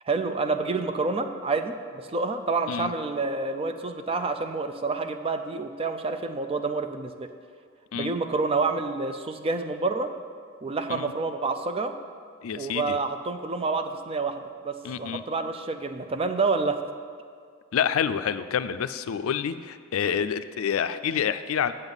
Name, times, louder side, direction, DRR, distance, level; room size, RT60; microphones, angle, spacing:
voice 1, 0.1-7.3 7.9-10.1 10.6-11.9 12.5-16.8, right 3 dB, 30° right, 8 dB, 0.4 m, -28 dB
voice 2, 12.4-13.0 14.8-15.2 17.7-21.7, left 8 dB, 90° left, 12 dB, 0.4 m, -28 dB
8.9 x 7.7 x 4.0 m, 2.1 s
head